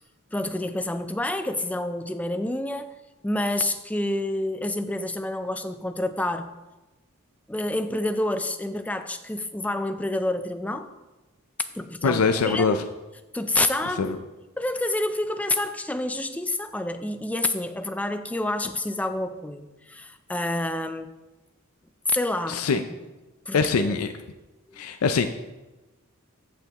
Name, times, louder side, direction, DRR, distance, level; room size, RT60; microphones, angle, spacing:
voice 1, 0.3-2.9 3.2-6.6 7.5-10.9 11.7-12.8 13.3-14.1 14.6-21.1 22.1-22.8 23.5-23.9 24.7-24.8, left 1 dB, 5° left, 9 dB, 0.4 m, -28 dB
voice 2, 12.0-12.8 14.0-14.2 22.5-22.8 23.5-24.1 24.7-25.3, left 5 dB, 90° left, 8 dB, 0.5 m, -23 dB
14.5 x 5.8 x 3.0 m, 1.1 s
head